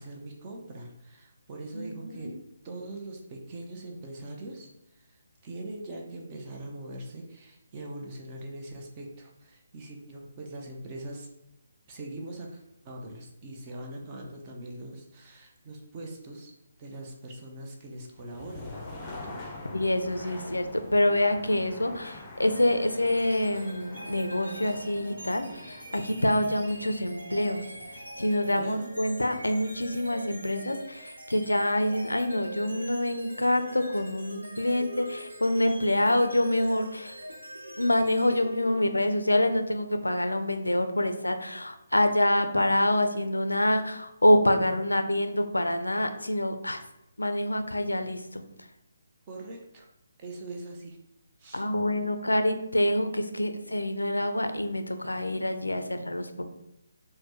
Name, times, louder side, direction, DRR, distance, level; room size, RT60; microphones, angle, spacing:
voice 1, 0.0-2.3 2.6-11.3 11.9-16.5 16.8-18.8 19.2-19.4 28.5-28.9 49.3-49.9 50.2-51.0 51.4-51.7, right 1 dB, 25° right, 0 dB, 0.6 m, -42 dB
voice 2, 1.7-2.4 19.7-27.7 28.2-37.2 37.8-46.8 47.2-48.4 51.5-56.4, left 1 dB, 85° left, 8 dB, 0.4 m, -26 dB
sound 1, 18.1-30.0, left 2 dB, 15° left, 0.6 m, -46 dB
sound 2, 22.6-39.2, equal, 80° right, 0.9 m, -43 dB
4.1 x 2.1 x 2.9 m, 0.84 s
figure-of-eight pair, 145°, 0 cm